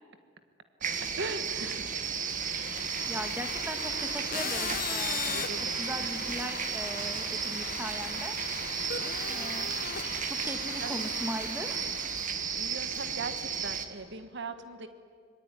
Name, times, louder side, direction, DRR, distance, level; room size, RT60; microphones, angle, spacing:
sound 1, 0.8-13.9, right 6 dB, 40° right, 1.6 m, -34 dB
voice 1, 0.9-1.9 2.2-2.6 5.2-6.2 10.8-11.0 12.5-14.9, right 3 dB, 60° right, 9 dB, 1.6 m, -40 dB
voice 2, 2.3-2.8 3.1-8.8 9.3-9.8 10.3-12.0, right 1 dB, 10° right, 7 dB, 1.8 m, -40 dB
sound 2, 2.4-12.6, left 7 dB, 45° left, 1.2 m, -39 dB
25.0 x 22.5 x 9.9 m, 2.1 s
head